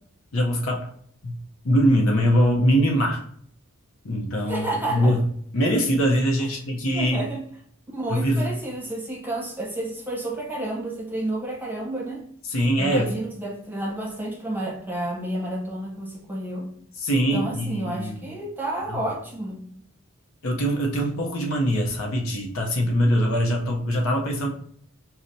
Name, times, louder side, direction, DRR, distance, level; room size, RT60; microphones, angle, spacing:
voice 1, 0.3-0.9 1.2-1.4 1.6-3.2 4.0-5.2 5.5-7.3 8.1-8.5 12.5-13.1 17.0-18.2 18.9-19.0 20.4-24.5, equal, 70° left, 2 dB, 0.6 m, -22 dB
voice 2, 4.5-5.1 6.9-7.4 7.9-12.2 12.8-16.7 17.3-19.6, right 1 dB, 10° right, -3 dB, 0.9 m, -30 dB
5.6 x 2.1 x 2.6 m, 0.62 s
head